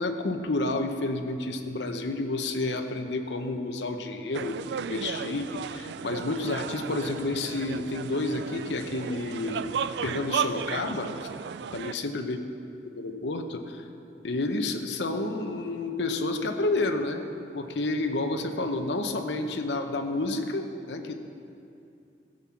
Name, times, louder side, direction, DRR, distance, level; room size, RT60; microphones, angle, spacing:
voice 1, 0.0-11.1 11.7-12.4 13.0-13.9 14.2-17.2 17.5-21.1, left 2 dB, 90° left, 5 dB, 0.8 m, -30 dB
sound 1, 4.3-11.9, right 7 dB, 75° right, 0.3 m, -34 dB
14.5 x 7.9 x 5.8 m, 2.6 s
head